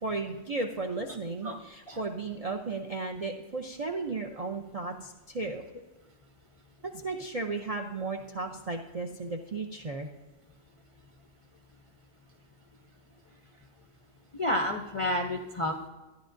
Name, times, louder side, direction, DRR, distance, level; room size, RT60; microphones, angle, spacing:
voice 1, 0.0-5.6 6.8-10.1, right 3 dB, 50° right, 2 dB, 0.4 m, -35 dB
voice 2, 14.3-15.9, left 1 dB, 45° left, 2 dB, 0.4 m, -30 dB
13.5 x 10.5 x 2.6 m, 1.2 s
omnidirectional pair, 1.4 m